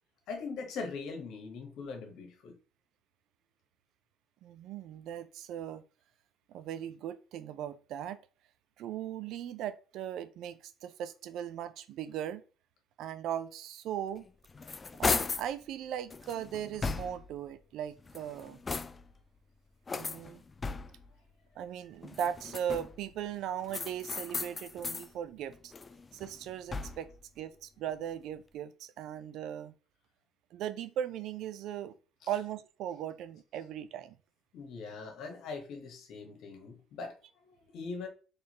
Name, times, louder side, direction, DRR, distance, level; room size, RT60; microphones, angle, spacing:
voice 1, 0.3-2.6 34.5-38.1, left 4 dB, 65° left, 1.2 m, -41 dB
voice 2, 4.4-5.8 6.5-8.2 8.8-12.4 13.0-14.3 15.0-18.6 20.0-20.4 21.6-25.7 26.1-27.1 27.4-29.7 30.5-31.9 32.3-34.2, right 10 dB, 65° right, 0.5 m, -38 dB
sound 1, 14.2-15.5 16.1-17.4 18.0-19.2 19.9-21.1 22.0-23.1 23.7-25.1 25.5-27.2, left 4 dB, 30° left, 0.4 m, -36 dB
4.1 x 3.4 x 2.9 m
hypercardioid pair, 55°, 0 cm